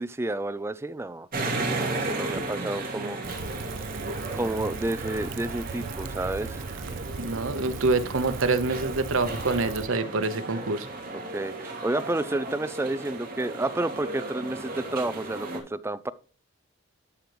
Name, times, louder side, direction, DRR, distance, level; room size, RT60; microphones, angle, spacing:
voice 1, 0.0-3.2 4.3-6.8 11.1-16.1, right 2 dB, 10° right, 0.4 m, -31 dB
sound 1, 1.3-15.6, right 2 dB, 45° right, 2.6 m, -35 dB
Rain, 3.2-9.9, right 4 dB, 65° right, 0.5 m, -38 dB
voice 2, 7.2-10.9, right 3 dB, 80° right, 1.0 m, -26 dB
12.5 x 5.2 x 3.1 m
head